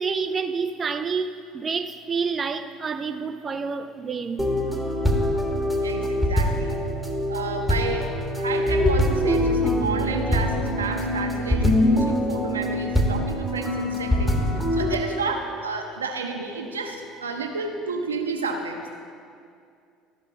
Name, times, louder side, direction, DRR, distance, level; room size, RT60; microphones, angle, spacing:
voice 1, 0.0-4.4, right 5 dB, 30° right, 9 dB, 0.4 m, -28 dB
sound 1, 4.4-14.9, left 1 dB, 10° left, 1.4 m, -23 dB
voice 2, 5.8-6.8 7.3-8.1 8.4-18.9, right 4 dB, 85° right, 3 dB, 0.8 m, -31 dB
13.5 x 5.2 x 5.3 m, 2.3 s
figure-of-eight pair, 65°, 0 cm